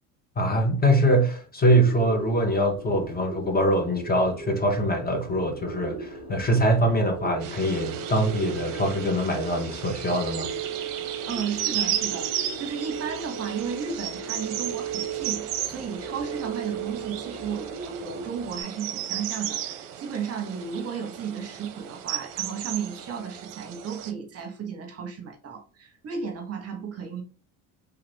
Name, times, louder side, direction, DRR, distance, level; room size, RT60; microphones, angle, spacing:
voice 1, 0.4-10.5, right 1 dB, 25° left, 0.9 m, -23 dB
Bird, 1.6-18.6, right 1 dB, 15° right, 1.1 m, -42 dB
sound 1, 3.6-17.8, right 8 dB, 80° left, 0.7 m, -38 dB
sound 2, 7.4-24.1, right 10 dB, 55° right, 0.6 m, -34 dB
voice 2, 11.3-27.2, right 6 dB, 35° right, 0.9 m, -34 dB
3.3 x 2.4 x 3.4 m
hypercardioid pair, 75°, 40 cm